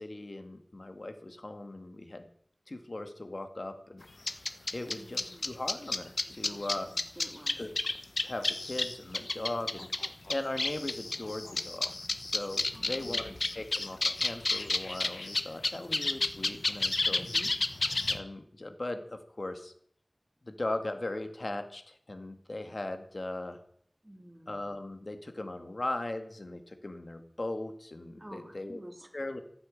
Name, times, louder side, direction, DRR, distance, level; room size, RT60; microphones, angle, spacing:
voice 1, 0.0-2.3 2.7-4.0 4.7-6.9 7.6-7.7 8.2-9.9 10.3-17.3 18.1-19.7 20.4-23.6 24.5-28.8 29.1-29.4, left 2 dB, 70° left, 7 dB, 2.2 m, -38 dB
sound 1, 4.3-18.2, left 2 dB, 90° left, 1.1 m, -31 dB
voice 2, 4.8-5.5 6.4-7.6 12.7-13.4 17.1-17.5 24.0-24.6 28.2-29.1, equal, 20° right, 4 dB, 3.0 m, -50 dB
15.0 x 9.6 x 8.8 m, 0.63 s
wide cardioid pair, 45°, 0 cm